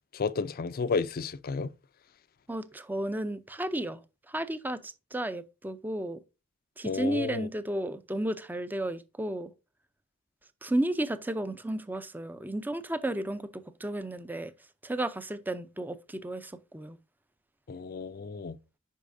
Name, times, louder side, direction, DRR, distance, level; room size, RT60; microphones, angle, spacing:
voice 1, 0.1-1.7 6.8-7.5 17.7-18.6, left 4 dB, 45° left, 0.5 m, -32 dB
voice 2, 2.5-4.0 4.3-6.2 6.8-9.5 10.6-14.5 14.8-17.0, right 1 dB, 10° right, 0.5 m, -33 dB
8.3 x 5.5 x 2.6 m
head